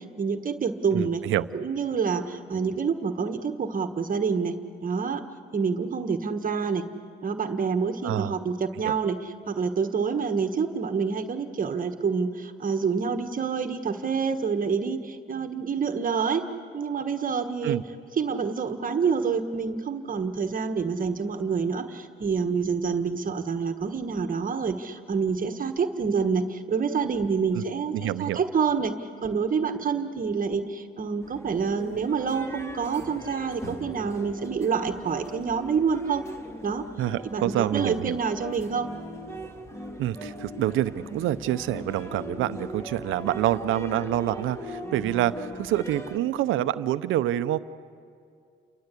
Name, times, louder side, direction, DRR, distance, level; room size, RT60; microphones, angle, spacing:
voice 1, 0.0-1.2 1.5-4.5 4.8-5.2 5.5-6.8 7.2-16.4 16.7-17.8 18.2-28.9 29.2-36.2 36.6-36.8 37.2-38.9, right 5 dB, 45° right, 7 dB, 1.4 m, -27 dB
voice 2, 0.9-1.5 2.5-2.7 8.0-8.3 8.8-8.9 17.6-17.8 27.5-27.6 27.9-28.4 37.0-38.2 40.0-47.6, right 13 dB, 85° right, 13 dB, 0.8 m, -27 dB
sound 1, 31.2-46.2, left 1 dB, 15° left, 2.2 m, -39 dB
29.0 x 23.0 x 8.3 m, 2.3 s
cardioid pair, 90°, 20 cm